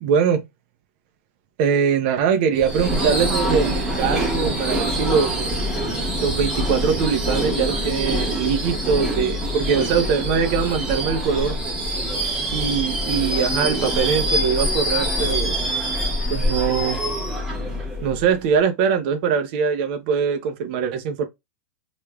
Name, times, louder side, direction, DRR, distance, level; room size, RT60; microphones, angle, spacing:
voice 1, 0.0-0.4 1.6-5.5 6.2-11.6 12.5-15.5 16.3-17.0 18.0-21.3, right 6 dB, 35° right, 0.7 m, -22 dB
Subway metro underground / Screech, 2.6-18.5, equal, 5° right, 0.9 m, -25 dB
3.3 x 3.1 x 2.3 m
supercardioid pair, 175°, 9 cm